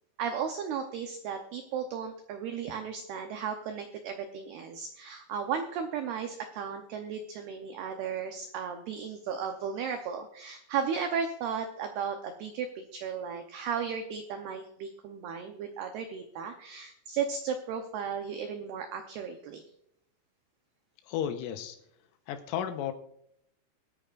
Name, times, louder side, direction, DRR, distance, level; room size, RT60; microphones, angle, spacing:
voice 1, 0.2-19.7, right 7 dB, 90° right, 5 dB, 2.2 m, -35 dB
voice 2, 21.1-21.8 22.3-22.9, left 9 dB, 80° left, 8 dB, 3.4 m, -33 dB
23.5 x 9.0 x 2.5 m, 0.75 s
omnidirectional pair, 5.8 m